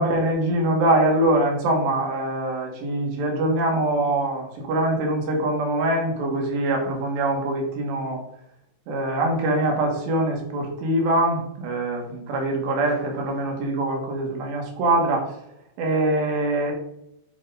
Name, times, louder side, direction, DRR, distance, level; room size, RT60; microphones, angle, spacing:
voice 1, 0.0-8.2 8.9-15.3 15.8-16.7, right 1 dB, 90° right, 1 dB, 4.0 m, -23 dB
9.1 x 5.6 x 3.9 m, 0.79 s
omnidirectional pair, 4.8 m